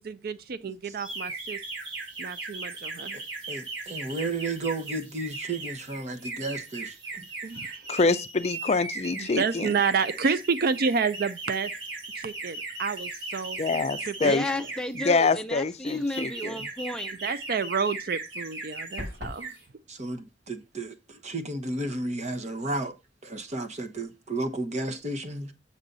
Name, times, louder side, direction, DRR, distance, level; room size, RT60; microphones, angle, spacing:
voice 1, 0.0-1.6 2.2-3.2 7.4-7.9 9.2-11.7 12.2-13.6 14.0-14.4 17.2-19.5, right 5 dB, 55° right, 0.5 m, -29 dB
voice 2, 0.6-0.9 3.1-7.3 19.9-22.9 23.2-25.5, right 2 dB, 40° right, 1.1 m, -33 dB
sound 1, 1.0-15.3 15.9-19.1 19.3-19.6, right 3 dB, 85° right, 3.0 m, -38 dB
voice 3, 7.9-9.7 13.6-14.4 15.0-16.7, left 4 dB, 35° left, 0.5 m, -25 dB
voice 4, 14.2-17.1, left 1 dB, 5° left, 0.8 m, -32 dB
sound 2, 19.0-19.5, left 1 dB, 70° right, 6.0 m, -36 dB
7.2 x 6.8 x 3.9 m
head